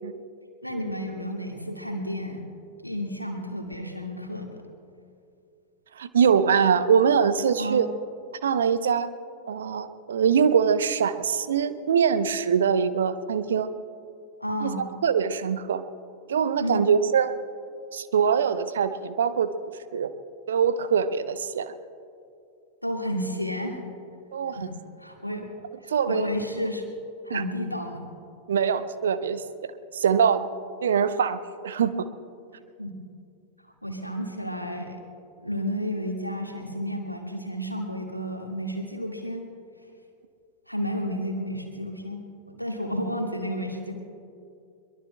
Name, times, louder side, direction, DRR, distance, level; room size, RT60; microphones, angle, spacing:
voice 1, 0.6-2.4 2.8-4.7 7.6-7.9 14.4-14.8 16.6-16.9 22.8-23.8 24.5-25.5 25.8-26.8 27.2-28.1 32.8-33.0 33.8-35.0 35.4-39.4 40.7-42.2 42.5-43.9, equal, 90° left, 2 dB, 1.7 m, -31 dB
voice 2, 6.0-7.9 8.4-9.1 9.5-13.7 14.6-15.8 16.3-17.3 17.9-19.5 19.9-20.1 20.5-21.7 24.3-24.7 25.9-26.3 27.3-27.4 28.5-30.4 30.8-32.1, right 7 dB, 65° right, 12 dB, 0.7 m, -23 dB
23.0 x 22.0 x 2.2 m, 2.4 s
figure-of-eight pair, 90°, 0 cm